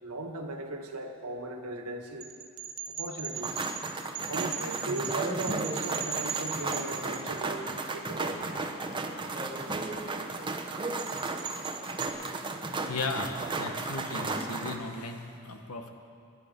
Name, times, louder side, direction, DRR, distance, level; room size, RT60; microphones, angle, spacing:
voice 1, 0.0-2.3 3.0-3.6 4.3-8.4, right 2 dB, 85° right, 4 dB, 1.5 m, -37 dB
sound 1, 2.2-7.7 11.0-12.1, right 7 dB, 50° right, 1.1 m, -38 dB
sound 2, 3.4-14.8, right 3 dB, 20° right, 0.8 m, -34 dB
voice 2, 12.9-15.9, left 3 dB, 75° left, 5 dB, 1.4 m, -36 dB
20.0 x 11.5 x 5.4 m, 2.4 s
head